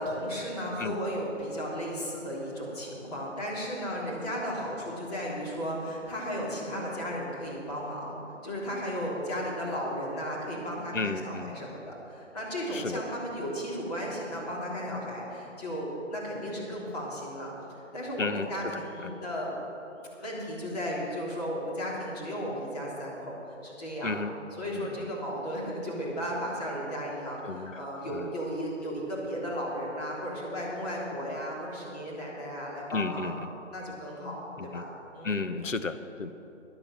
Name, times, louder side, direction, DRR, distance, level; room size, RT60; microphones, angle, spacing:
voice 1, 0.0-19.5 19.9-23.4 23.6-24.1 24.6-33.3 33.7-34.4 34.7-34.8 35.1-35.4, equal, 30° left, -5 dB, 3.4 m, -35 dB
voice 2, 10.9-11.5 12.7-13.0 18.2-19.1 24.0-24.3 24.7-25.1 27.4-28.3 32.9-33.5 34.6-34.8 35.2-36.3, left 3 dB, 80° left, 10 dB, 1.0 m, -33 dB
13.5 x 11.0 x 6.2 m, 3.0 s
figure-of-eight pair, 155°, 38 cm